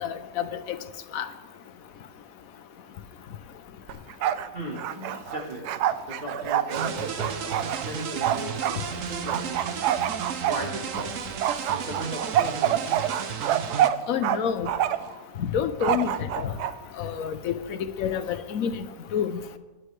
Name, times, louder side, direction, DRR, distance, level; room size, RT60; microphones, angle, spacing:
voice 1, 0.0-0.8 1.1-1.3 14.1-14.7 15.4-16.5 17.0-17.6 18.0-18.9 19.1-19.4, left 8 dB, 65° left, 10 dB, 1.1 m, -28 dB
Bark, 3.9-4.5 4.8-8.8 9.3-11.1 11.4-14.4 14.7-15.1 15.8-16.7, right 11 dB, 80° right, 1.1 m, -26 dB
voice 2, 4.5-4.8 5.3-10.0 10.4-11.2 11.7-13.0, right 1 dB, 35° right, -2 dB, 1.7 m, -37 dB
sound 1, 6.7-13.9, right 6 dB, 60° right, 1.1 m, -34 dB
19.5 x 9.8 x 3.3 m, 1.2 s
omnidirectional pair, 1.7 m